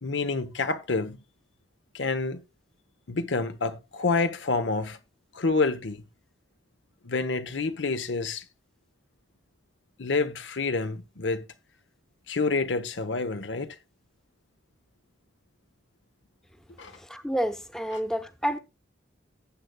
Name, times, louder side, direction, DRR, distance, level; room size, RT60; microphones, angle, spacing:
voice 1, 0.0-1.2 1.9-2.4 3.1-5.0 5.3-6.0 7.0-8.4 10.0-11.4 12.3-13.8 16.8-16.9 17.9-18.0, left 3 dB, 85° left, 0.9 m, -28 dB
voice 2, 17.1-18.6, equal, 5° left, 0.8 m, -29 dB
18.5 x 7.9 x 2.3 m
head